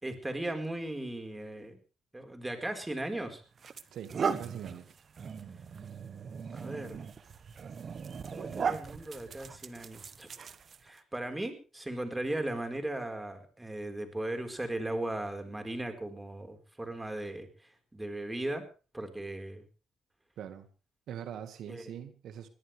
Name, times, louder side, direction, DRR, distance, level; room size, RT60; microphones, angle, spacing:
voice 1, 0.0-1.8 2.1-3.4 6.5-7.0 8.3-10.3 10.8-17.5 17.9-18.6 18.9-19.6 21.7-21.9, right 1 dB, 10° right, 6 dB, 4.6 m, -37 dB
sound 1, 2.8-3.0 3.6-11.0, right 6 dB, 50° right, 1.4 m, -38 dB
voice 2, 3.9-4.9 20.4-20.7 21.1-22.5, right 9 dB, 75° right, 9 dB, 1.9 m, -42 dB
22.0 x 17.5 x 3.5 m, 0.35 s
cardioid pair, 90°, 0 cm